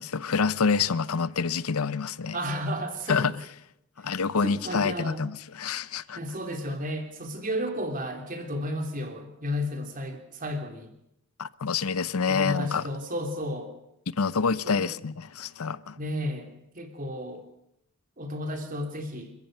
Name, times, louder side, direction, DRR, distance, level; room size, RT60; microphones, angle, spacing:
voice 1, 0.0-2.4 3.1-3.3 4.0-6.2 11.4-12.9 14.2-16.0, left 5 dB, 90° left, 0.7 m, -27 dB
voice 2, 2.3-3.4 4.4-5.3 6.1-10.9 12.3-13.7 14.6-15.0 16.0-17.4 18.2-19.3, equal, 40° right, 3.3 m, -33 dB
28.5 x 14.5 x 6.7 m
head